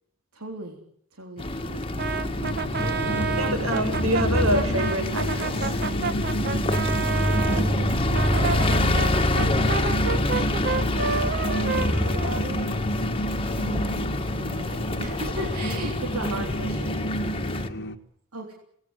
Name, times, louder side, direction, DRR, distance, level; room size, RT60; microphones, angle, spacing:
voice 1, 0.3-0.8 1.1-1.8 7.3-8.6 10.8-12.7 13.6-17.0 18.3-18.5, right 2 dB, 85° right, 2 dB, 3.7 m, -37 dB
sound 1, 1.4-17.7, left 1 dB, 25° left, 1.9 m, -26 dB
Brass instrument, 2.0-7.6 8.1-12.9, right 5 dB, 45° right, 1.6 m, -30 dB
sound 2, 2.4-18.0, equal, 50° left, 1.7 m, -32 dB
voice 2, 3.3-5.8 7.6-7.7, right 1 dB, 65° right, 7 dB, 6.3 m, -27 dB
25.5 x 19.0 x 8.1 m, 0.70 s
head